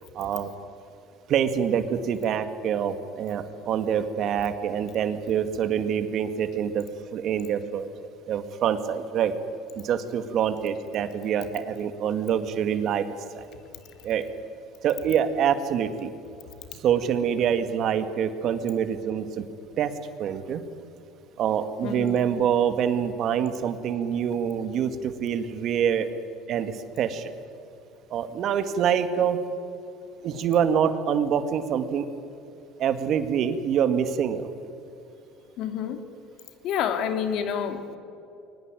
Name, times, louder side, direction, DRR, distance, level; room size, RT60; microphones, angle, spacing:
voice 1, 0.1-0.5 1.3-6.9 7.1-7.9 8.3-9.3 9.8-13.1 13.3-13.5 14.0-14.3 14.8-16.1 16.8-19.5 19.8-19.9 20.2-20.6 21.4-26.1 26.5-27.3 28.1-29.4 30.2-32.1 32.8-34.5, right 8 dB, 55° right, 10 dB, 2.0 m, -25 dB
voice 2, 21.8-22.3 35.6-36.0 36.6-38.0, left 8 dB, 65° left, 8 dB, 2.5 m, -28 dB
22.0 x 19.5 x 9.1 m, 2.7 s
supercardioid pair, 95°, 0 cm